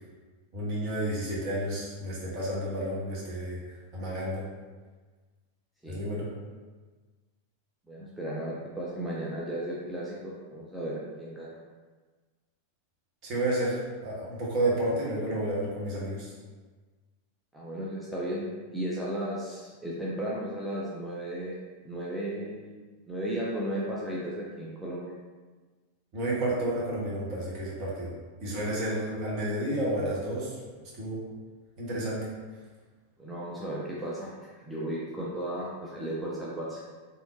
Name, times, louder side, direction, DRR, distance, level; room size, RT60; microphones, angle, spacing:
voice 1, 0.5-4.5 5.9-6.3 13.2-16.3 26.1-28.1 28.4-30.6 31.0-31.2 31.8-32.3, right 1 dB, 40° right, -5 dB, 1.1 m, -31 dB
voice 2, 7.9-11.6 17.5-18.4 18.7-21.6 21.8-22.7 23.1-25.1 33.2-34.3 34.7-36.8, right 1 dB, ahead, -7 dB, 0.5 m, -35 dB
3.5 x 2.7 x 2.5 m, 1.4 s
figure-of-eight pair, 90°, 0 cm